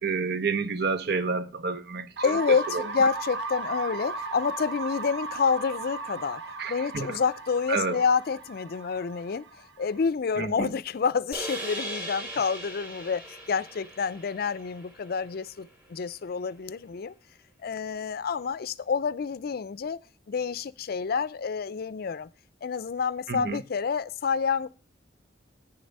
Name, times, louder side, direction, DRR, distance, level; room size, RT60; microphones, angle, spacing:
voice 1, 0.0-2.1 2.7-2.8 6.6-7.2 7.7-8.0 10.4-10.7 23.3-23.6, right 4 dB, 60° right, 0.9 m, -29 dB
voice 2, 2.2-9.5 9.8-17.1 17.6-20.0 20.3-22.3 22.6-24.7, left 5 dB, 55° left, 0.4 m, -28 dB
sound 1, 2.2-10.0, right 3 dB, 80° right, 1.1 m, -36 dB
sound 2, 11.3-15.7, right 1 dB, 10° right, 3.2 m, -39 dB
10.0 x 6.8 x 5.3 m
head